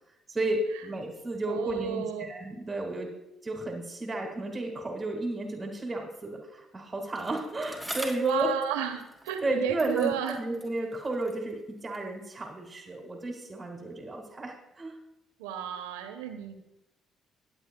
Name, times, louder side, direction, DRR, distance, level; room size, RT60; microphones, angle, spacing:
voice 1, 0.3-3.1 3.4-8.5 9.4-15.0, right 2 dB, 25° right, 0 dB, 1.8 m, -33 dB
voice 2, 1.5-2.3 8.2-10.4 15.4-16.6, right 10 dB, 85° right, 7 dB, 0.9 m, -32 dB
Bicycle, 7.1-9.5 9.8-12.2 12.9-13.0, right 1 dB, ahead, 2.8 m, -44 dB
22.5 x 8.0 x 2.2 m, 0.91 s
hypercardioid pair, 55°, 0 cm